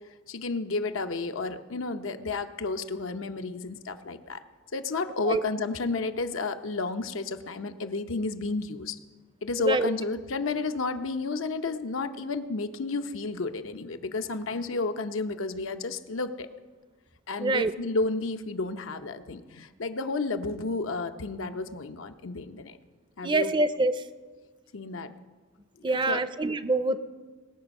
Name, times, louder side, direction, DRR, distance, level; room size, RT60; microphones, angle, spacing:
voice 1, 0.3-4.4 4.7-9.0 9.4-16.5 17.3-22.8 23.2-23.5 24.7-25.1 26.1-26.2, left 3 dB, 80° left, 8 dB, 0.7 m, -31 dB
voice 2, 9.6-9.9 17.4-17.7 23.2-24.1 25.8-27.0, right 2 dB, 25° right, 12 dB, 0.5 m, -25 dB
20.0 x 7.0 x 5.4 m, 1.4 s
head